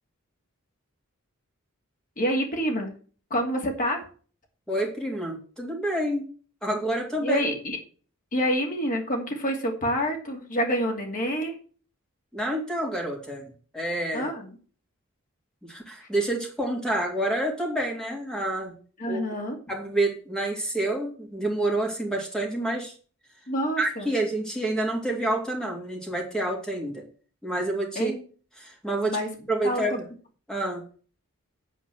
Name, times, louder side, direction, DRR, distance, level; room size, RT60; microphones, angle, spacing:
voice 1, 2.2-2.9 3.3-4.0 7.2-7.8 8.3-11.5 14.1-14.5 19.0-19.6 23.5-24.1 27.9-28.2 29.1-29.3 29.6-29.8, equal, 40° left, 2 dB, 2.7 m, -27 dB
voice 2, 4.7-6.2 6.6-7.4 12.3-13.4 13.7-14.3 15.6-18.7 19.1-19.3 19.7-22.9 23.8-27.0 27.4-28.1 28.6-29.2 29.5-30.0 30.5-30.8, right 1 dB, 5° left, 0 dB, 3.1 m, -28 dB
9.2 x 4.6 x 7.7 m, 0.41 s
head